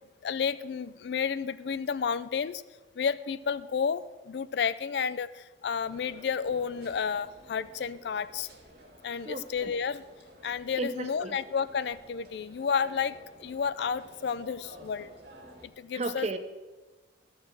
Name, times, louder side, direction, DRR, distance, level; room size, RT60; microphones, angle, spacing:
voice 1, 0.2-2.6 3.0-8.5 9.0-10.0 10.4-15.1 15.6-16.3, left 6 dB, 65° left, 16 dB, 0.4 m, -31 dB
sound 1, 5.8-15.7, right 1 dB, 55° right, 2.0 m, -52 dB
voice 2, 9.3-9.7 10.8-11.4 15.9-16.4, right 2 dB, 35° right, 10 dB, 0.6 m, -34 dB
12.5 x 4.8 x 7.5 m, 1.2 s
head